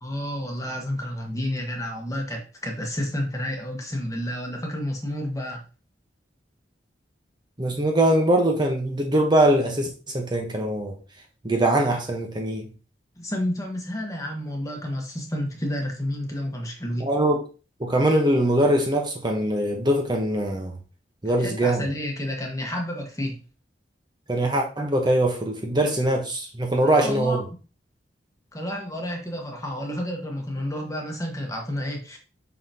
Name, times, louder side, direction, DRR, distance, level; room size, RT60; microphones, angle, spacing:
voice 1, 0.0-5.6 13.2-17.1 21.2-23.4 26.8-27.4 28.5-32.2, left 1 dB, 20° left, 1 dB, 1.3 m, -30 dB
voice 2, 7.6-10.9 11.4-12.7 17.0-17.4 17.8-20.8 21.2-21.9 24.3-27.4, right 1 dB, 25° right, 2 dB, 1.0 m, -22 dB
5.8 x 5.7 x 2.9 m, 0.34 s
head